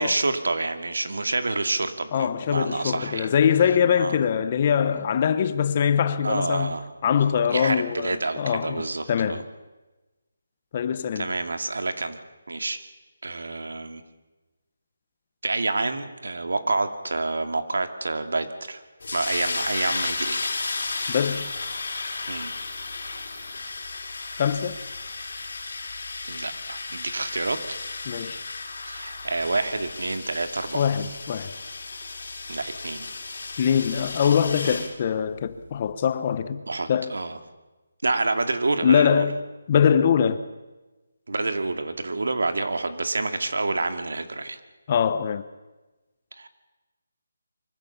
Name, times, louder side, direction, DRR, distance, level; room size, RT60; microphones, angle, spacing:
voice 1, 0.0-3.3 4.0-4.2 6.2-6.9 7.5-9.4 11.2-12.2 12.5-12.8 13.2-14.0 15.4-18.8 19.1-20.5 22.3-22.5 26.3-27.8 28.9-30.9 32.5-33.1 34.6-34.9 36.7-37.4 38.0-39.2 41.3-44.6 46.4-46.5, right 3 dB, 80° right, 2.3 m, -28 dB
voice 2, 2.1-6.7 7.0-8.8 9.1-9.4 10.7-11.3 21.1-21.5 24.4-24.8 28.0-28.4 30.7-31.5 33.6-36.6 36.9-37.1 38.8-39.4 39.7-40.4 44.9-45.4, left 8 dB, 30° left, 0.9 m, -23 dB
sound 1, 19.0-34.9, left 3 dB, 65° left, 3.5 m, -34 dB
24.0 x 15.5 x 7.3 m
hypercardioid pair, 170°, 0 cm